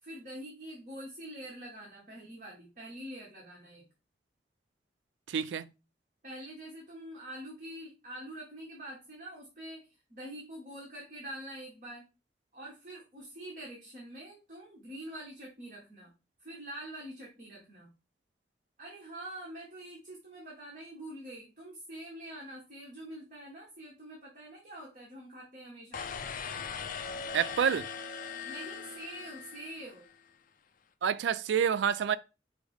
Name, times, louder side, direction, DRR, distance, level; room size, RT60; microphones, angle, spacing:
voice 1, 0.0-3.9 6.2-12.0 12.5-16.1 16.4-17.9 18.8-26.1 28.4-30.1, right 1 dB, 45° right, 1.3 m, -45 dB
voice 2, 5.3-5.7 27.3-27.9 31.0-32.2, right 8 dB, 85° right, 0.3 m, -28 dB
sound 1, 25.9-30.1, left 6 dB, 50° left, 0.4 m, -40 dB
4.9 x 2.1 x 4.7 m
head